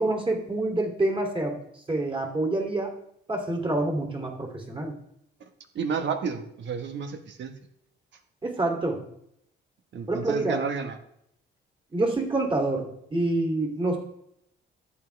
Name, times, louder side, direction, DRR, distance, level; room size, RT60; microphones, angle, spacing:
voice 1, 0.0-1.6 1.9-2.9 3.3-4.9 8.4-9.0 10.1-10.6 11.9-14.0, right 2 dB, 25° right, 2 dB, 3.0 m, -27 dB
voice 2, 5.7-7.5 9.9-11.0, right 6 dB, 65° right, 7 dB, 1.4 m, -31 dB
13.5 x 8.8 x 3.4 m, 0.73 s
cardioid pair, 90°, 20 cm